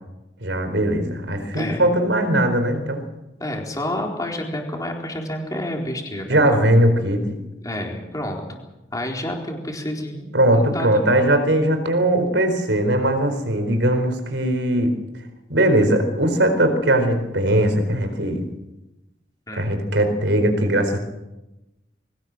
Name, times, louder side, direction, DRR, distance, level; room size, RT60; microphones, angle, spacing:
voice 1, 0.4-3.0 6.3-7.4 10.3-15.0 15.5-18.4 19.6-21.0, right 1 dB, 85° right, 7 dB, 4.3 m, -19 dB
voice 2, 3.4-6.4 7.6-8.6 8.9-11.1 19.5-19.7, left 1 dB, 20° left, 1 dB, 4.2 m, -29 dB
22.5 x 18.0 x 7.7 m, 0.99 s
head